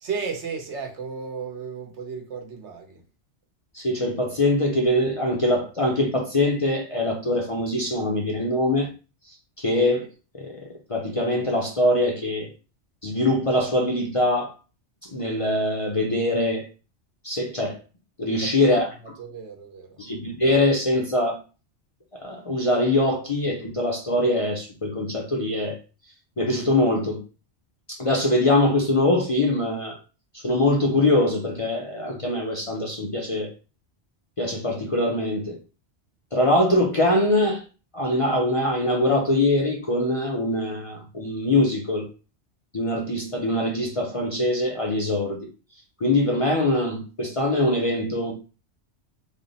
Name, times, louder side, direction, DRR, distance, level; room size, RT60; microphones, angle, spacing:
voice 1, 0.0-3.0 18.3-18.9 19.2-20.0, right 5 dB, 75° right, 1.1 m, -34 dB
voice 2, 3.7-8.9 9.6-10.1 10.3-10.6 10.9-12.5 13.0-14.5 15.0-16.7 17.2-17.8 18.2-18.9 20.0-21.4 22.1-25.8 26.4-27.2 27.9-30.0 30.3-33.5 34.4-35.6 36.3-37.6 37.9-42.1 42.7-45.5 46.0-48.3, left 1 dB, 40° left, 0.5 m, -23 dB
3.4 x 2.0 x 3.9 m
omnidirectional pair, 1.2 m